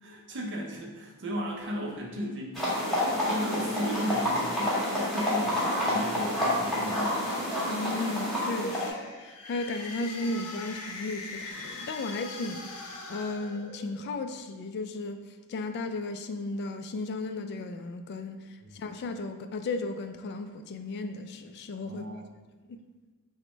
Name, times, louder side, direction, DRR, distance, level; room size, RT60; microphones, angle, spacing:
voice 1, 0.0-7.2 18.6-18.7 21.8-22.3, equal, 55° right, -1 dB, 0.5 m, -35 dB
sound 1, 2.6-8.9, left 1 dB, ahead, 1.1 m, -28 dB
voice 2, 7.7-15.2 15.5-18.5 18.7-22.0, left 2 dB, 50° left, 8 dB, 0.3 m, -35 dB
sound 2, 8.2-14.2, left 3 dB, 85° left, 0.6 m, -42 dB
5.7 x 2.1 x 3.1 m, 1.3 s
head